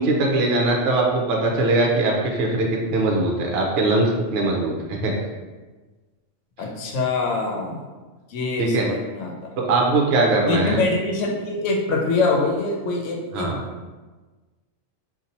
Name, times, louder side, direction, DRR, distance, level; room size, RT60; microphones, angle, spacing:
voice 1, 0.0-5.2 8.6-8.9 9.6-10.8 13.3-13.6, right 2 dB, 60° right, -1 dB, 0.8 m, -21 dB
voice 2, 6.6-7.8 8.3-9.3 10.5-13.5, left 3 dB, 80° left, 0 dB, 0.9 m, -24 dB
2.6 x 2.5 x 4.1 m, 1.3 s
omnidirectional pair, 1.3 m